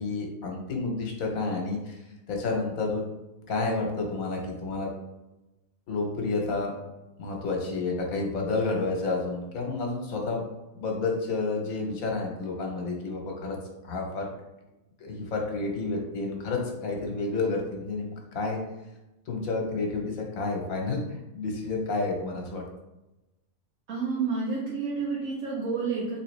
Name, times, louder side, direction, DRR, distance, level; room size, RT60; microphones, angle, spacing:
voice 1, 0.0-2.0 2.3-3.0 3.4-4.9 5.9-6.7 7.2-10.4 10.7-13.6 13.8-14.3 15.0-18.6 19.3-21.0 21.3-22.6, left 3 dB, 75° left, 1 dB, 1.3 m, -30 dB
voice 2, 23.9-26.2, right 4 dB, 70° right, -6 dB, 1.2 m, -29 dB
3.8 x 3.1 x 3.2 m, 1.0 s
omnidirectional pair, 1.5 m